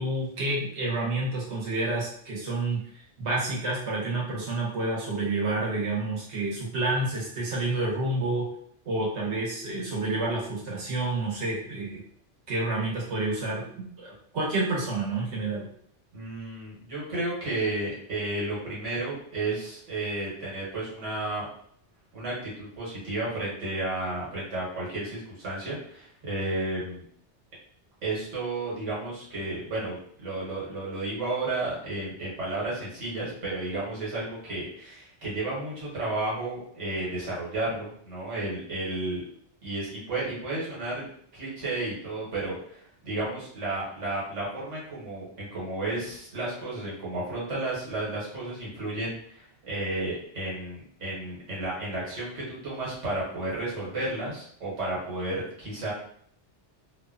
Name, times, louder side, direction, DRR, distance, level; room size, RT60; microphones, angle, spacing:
voice 1, 0.0-8.5 8.8-12.0 12.5-15.7, right 2 dB, 70° right, -5 dB, 1.2 m, -29 dB
voice 2, 16.1-21.5 22.1-27.0 28.0-39.2 39.6-41.1 41.3-55.9, right 2 dB, 90° right, -6 dB, 1.5 m, -32 dB
2.8 x 2.2 x 2.4 m, 0.63 s
omnidirectional pair, 1.2 m